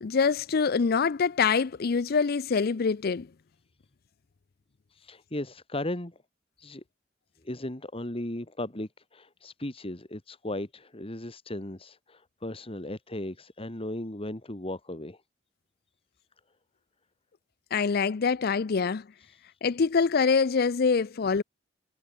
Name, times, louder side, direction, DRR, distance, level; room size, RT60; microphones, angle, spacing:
voice 1, 0.0-3.3 17.7-19.0 19.6-21.4, left 5 dB, 55° left, 0.5 m, -25 dB
voice 2, 4.9-6.2 6.6-6.8 7.4-15.2 19.2-19.4, left 1 dB, 30° left, 2.2 m, -36 dB
head